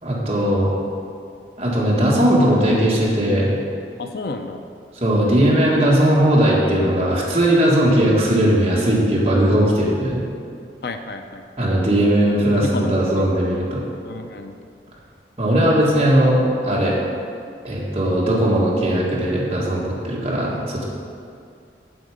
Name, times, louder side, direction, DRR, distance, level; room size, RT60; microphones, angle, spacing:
voice 1, 0.0-0.7 1.6-3.5 5.0-10.2 11.6-13.8 15.4-17.0 17.6-20.8, right 1 dB, 35° right, -6 dB, 1.8 m, -18 dB
voice 2, 4.0-4.6 10.8-11.7 12.6-13.3 14.0-14.5, left 3 dB, 60° left, 6 dB, 0.5 m, -31 dB
8.0 x 7.3 x 5.0 m, 2.4 s
head